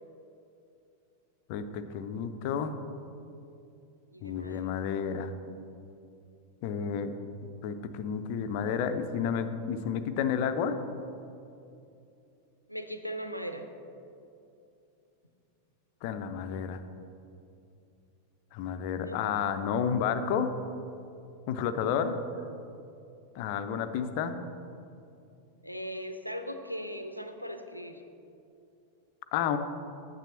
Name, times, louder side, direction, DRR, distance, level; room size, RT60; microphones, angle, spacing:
voice 1, 1.5-2.7 4.2-5.3 6.6-7.1 7.6-10.8 16.0-16.8 18.5-20.5 21.5-22.2 23.3-24.3 29.3-29.6, left 7 dB, 45° left, 9 dB, 0.6 m, -31 dB
voice 2, 4.1-4.7 12.7-13.6 19.0-19.2 21.9-22.2 25.6-28.0, equal, 90° left, 7 dB, 0.6 m, -39 dB
9.0 x 7.5 x 4.3 m, 2.7 s
figure-of-eight pair, 90°, 0 cm